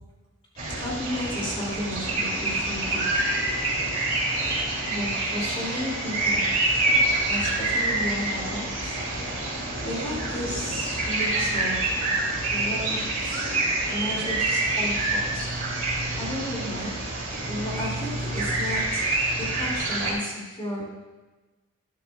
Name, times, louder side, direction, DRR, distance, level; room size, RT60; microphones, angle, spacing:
voice 1, 0.6-3.4 4.9-6.6 7.3-9.0 9.8-12.0 12.5-13.4 13.8-15.5 16.2-17.0 17.5-19.0 19.4-20.8, equal, 25° left, -4 dB, 2.5 m, -33 dB
sound 1, 0.6-20.1, right 2 dB, 40° right, 2.7 m, -27 dB
12.0 x 10.5 x 2.3 m, 1.2 s
head